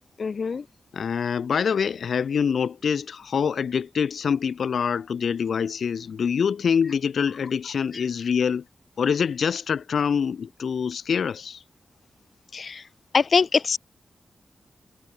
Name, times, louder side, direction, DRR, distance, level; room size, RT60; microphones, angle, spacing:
voice 1, 0.2-0.6 7.9-8.0 12.5-12.9 13.1-13.8, left 5 dB, 50° left, 3.6 m, -23 dB
voice 2, 0.9-8.7 9.0-11.6, left 6 dB, 70° left, 6.9 m, -25 dB
wide cardioid pair, 150°, 0 cm